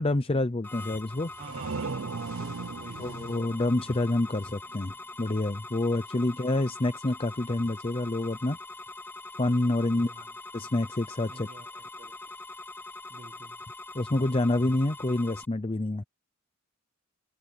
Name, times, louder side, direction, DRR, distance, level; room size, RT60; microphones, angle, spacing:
voice 1, 0.0-1.3 3.0-8.6 9.4-10.3 10.5-11.5 13.9-16.0, left 2 dB, 25° left, 0.7 m, -27 dB
sound 1, 0.6-15.4, left 2 dB, 10° left, 4.2 m, -43 dB
sound 2, 1.2-4.8, right 4 dB, 75° right, 0.6 m, -38 dB
voice 2, 1.3-3.2 9.8-10.4 11.3-12.2 13.1-13.6, right 2 dB, 35° right, 1.4 m, -48 dB
head